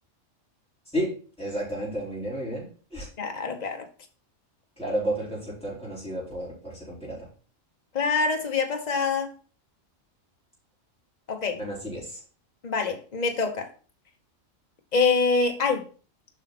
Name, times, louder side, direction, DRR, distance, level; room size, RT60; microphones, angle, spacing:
voice 1, 0.9-3.1 4.8-7.3 11.6-12.2, right 1 dB, 5° left, 4.5 m, -32 dB
voice 2, 3.2-3.8 7.9-9.3 11.3-11.6 12.6-13.7 14.9-15.9, left 4 dB, 35° left, 1.2 m, -25 dB
7.8 x 5.7 x 4.2 m
omnidirectional pair, 1.3 m